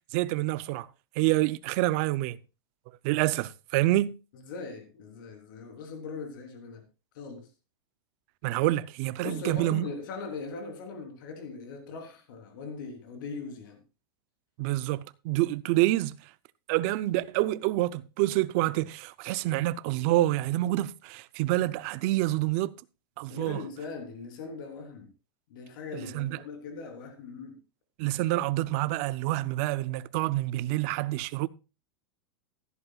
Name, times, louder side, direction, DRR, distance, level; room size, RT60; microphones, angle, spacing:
voice 1, 0.1-0.9 1.2-2.4 3.0-4.1 8.4-9.8 14.6-16.2 16.7-22.7 23.2-23.6 26.1-26.4 28.0-31.5, right 17 dB, 35° right, 0.5 m, -27 dB
voice 2, 4.5-6.9 7.1-7.5 9.2-13.8 23.3-25.1 25.5-27.6, left 4 dB, 50° left, 3.6 m, -40 dB
16.0 x 11.0 x 2.4 m
supercardioid pair, 175°, 14 cm